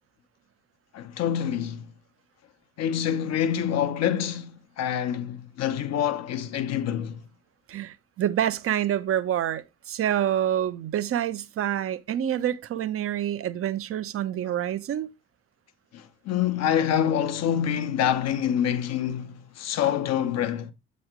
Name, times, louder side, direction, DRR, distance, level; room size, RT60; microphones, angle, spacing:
voice 1, 0.9-1.9 2.8-7.2 15.9-20.7, left 9 dB, 60° left, 1.0 m, -26 dB
voice 2, 7.7-15.1, right 11 dB, 50° right, 0.7 m, -27 dB
7.8 x 3.1 x 5.9 m
hypercardioid pair, 50°, 29 cm